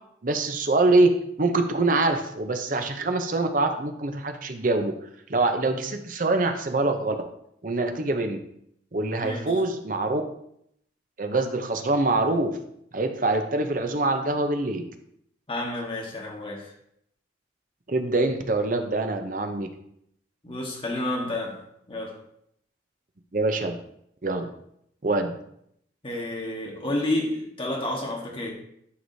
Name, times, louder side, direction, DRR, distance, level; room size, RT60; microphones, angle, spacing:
voice 1, 0.2-1.1 1.4-4.9 5.3-7.1 7.6-8.4 8.9-10.2 11.2-12.6 12.9-14.9 17.9-19.7 23.3-23.8 24.2-24.5 25.0-25.4, right 2 dB, 45° right, 6 dB, 0.7 m, -24 dB
voice 2, 9.2-9.6 15.5-16.7 20.4-22.2 26.0-28.5, left 1 dB, 30° left, -1 dB, 1.4 m, -30 dB
11.0 x 4.8 x 2.7 m, 0.73 s
head